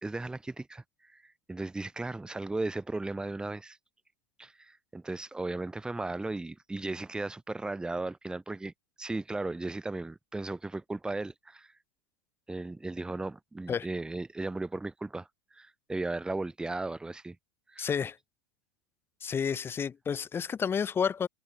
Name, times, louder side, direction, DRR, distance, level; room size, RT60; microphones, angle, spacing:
voice 1, 0.0-3.8 4.4-8.7 9.0-11.7 12.5-17.4 17.7-17.9, right 2 dB, 5° right, 1.2 m, -36 dB
voice 2, 17.8-18.2 19.2-21.3, left 7 dB, 20° left, 0.8 m, -30 dB
hypercardioid pair, 115°, 12 cm